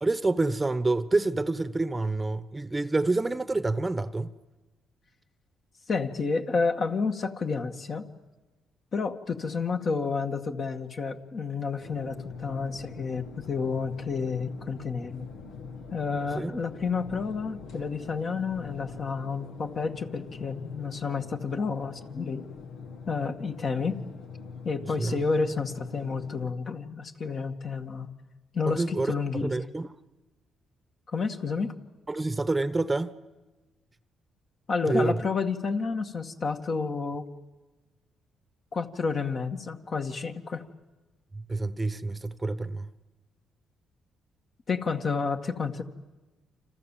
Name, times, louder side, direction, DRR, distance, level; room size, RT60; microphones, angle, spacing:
voice 1, 0.0-4.3 16.3-16.5 25.0-25.2 28.7-29.9 32.1-33.1 34.9-35.2 41.3-42.9, right 2 dB, 20° right, 1.0 m, -28 dB
voice 2, 5.9-8.1 8.9-15.3 15.9-22.4 23.1-24.0 24.6-28.1 28.5-29.5 31.1-31.7 34.7-37.3 38.7-40.6 44.7-45.8, left 4 dB, 50° left, 2.2 m, -30 dB
sound 1, 11.8-26.5, left 5 dB, 90° left, 2.2 m, -43 dB
29.5 x 26.5 x 7.6 m
cardioid pair, 90°, 0 cm